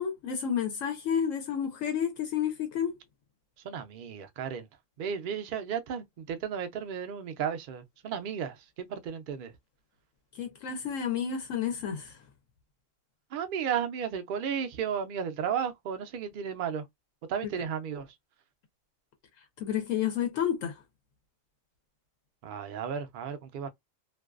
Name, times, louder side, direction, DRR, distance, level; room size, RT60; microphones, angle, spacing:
voice 1, 0.0-3.0 10.4-12.2 19.6-20.7, left 8 dB, 75° left, 1.0 m, -30 dB
voice 2, 3.6-4.7 5.0-9.5 13.3-16.9 17.3-18.1 22.4-23.7, right 7 dB, 65° right, 0.5 m, -34 dB
2.5 x 2.2 x 2.3 m
omnidirectional pair, 1.4 m